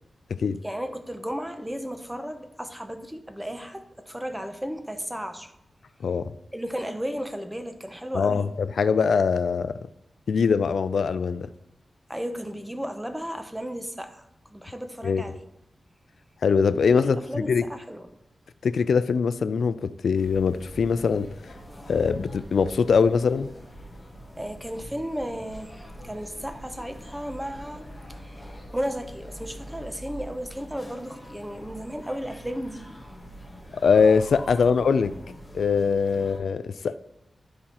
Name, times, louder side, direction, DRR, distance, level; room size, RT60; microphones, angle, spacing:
voice 1, 0.6-5.5 6.5-8.5 12.1-14.2 14.5-15.4 17.0-18.1 24.4-33.1, equal, 5° right, 0.6 m, -34 dB
voice 2, 8.1-9.7 10.3-11.5 15.0-15.2 16.4-17.2 17.5-17.6 18.6-21.3 21.9-23.5 33.8-35.1 35.5-37.0, left 5 dB, 80° left, 0.3 m, -22 dB
sound 1, 20.1-36.4, equal, 15° left, 1.1 m, -44 dB
12.5 x 4.2 x 2.9 m
wide cardioid pair, 140°, 0 cm